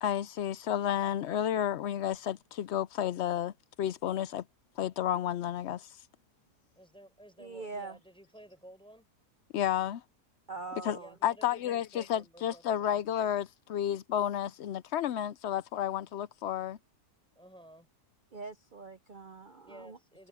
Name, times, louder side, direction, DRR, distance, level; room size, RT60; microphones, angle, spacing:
voice 1, 0.0-3.5 3.8-4.4 4.8-6.0 9.5-10.0 10.8-11.0 11.2-16.8, left 10 dB, 85° left, 0.6 m, -31 dB
voice 2, 6.8-9.1 10.7-13.0 17.3-17.9 19.6-20.3, right 1 dB, 5° left, 4.8 m, -53 dB
voice 3, 7.4-8.0 10.5-11.1 18.3-20.0, right 3 dB, 60° right, 0.5 m, -43 dB
omnidirectional pair, 1.7 m